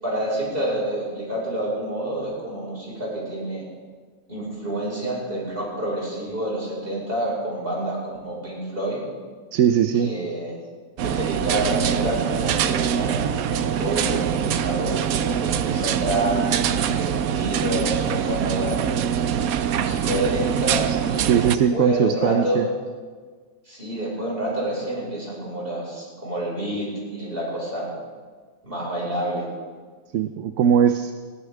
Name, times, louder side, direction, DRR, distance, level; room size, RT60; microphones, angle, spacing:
voice 1, 0.0-3.6 4.3-9.0 10.0-10.5 11.0-18.9 19.3-22.7 23.7-27.9 28.6-29.5, right 1 dB, 40° right, -5 dB, 5.6 m, -28 dB
voice 2, 9.5-10.1 20.9-21.0 21.3-22.7 30.1-31.1, right 8 dB, 65° right, 9 dB, 0.9 m, -20 dB
sound 1, 11.0-21.6, right 9 dB, 90° right, 1.1 m, -24 dB
21.0 x 15.0 x 3.6 m, 1.5 s
omnidirectional pair, 1.4 m